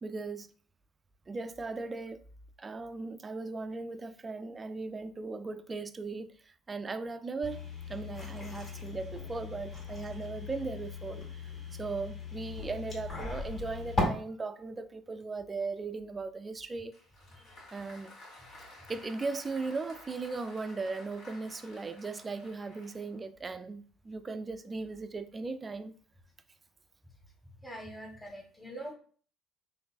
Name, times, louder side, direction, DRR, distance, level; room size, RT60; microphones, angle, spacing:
voice 1, 0.0-0.5 1.3-2.2 2.6-11.2 11.7-16.9 17.7-18.1 18.9-25.9, right 3 dB, 25° right, 0.4 m, -38 dB
sound 1, 7.4-14.0, left 4 dB, 35° left, 1.8 m, -38 dB
Applause, 16.9-23.3, left 2 dB, 55° left, 1.8 m, -53 dB
voice 2, 27.6-28.9, right 1 dB, 5° left, 1.2 m, -43 dB
3.7 x 3.2 x 2.4 m
hypercardioid pair, 60°, 0 cm